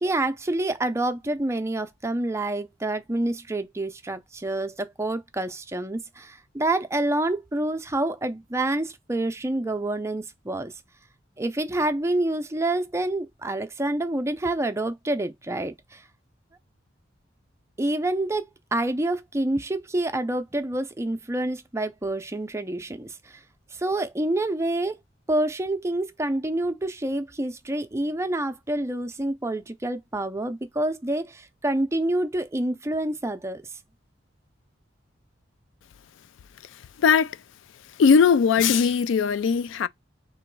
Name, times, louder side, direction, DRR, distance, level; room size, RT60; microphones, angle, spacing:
voice 1, 0.0-10.7 11.4-16.0 17.8-23.4 23.7-25.0 25.3-33.6, right 1 dB, 15° right, 0.5 m, -27 dB
voice 2, 38.0-39.9, left 6 dB, 80° left, 0.3 m, -19 dB
3.8 x 3.0 x 4.5 m
head